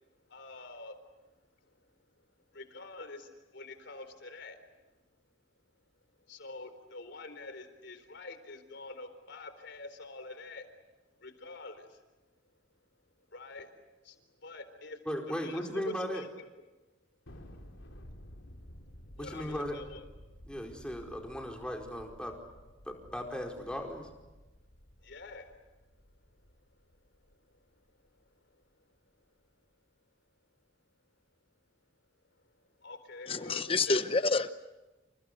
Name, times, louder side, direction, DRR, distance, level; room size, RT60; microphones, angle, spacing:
voice 1, 0.1-1.1 1.6-1.8 2.5-4.7 6.3-10.7 11.1-12.0 13.3-13.8 14.0-16.5 17.6-17.7 19.1-20.1 25.0-25.6 27.3-27.8 28.2-28.6 32.4-32.5 32.8-34.0, left 2 dB, 65° left, 4.0 m, -47 dB
voice 2, 15.1-16.2 19.2-19.8 20.5-22.3 22.8-24.1, equal, 5° left, 4.7 m, -37 dB
Thunder, 17.3-27.9, equal, 85° left, 3.7 m, -53 dB
voice 3, 33.3-34.5, left 3 dB, 30° left, 0.9 m, -28 dB
29.5 x 28.5 x 6.9 m
head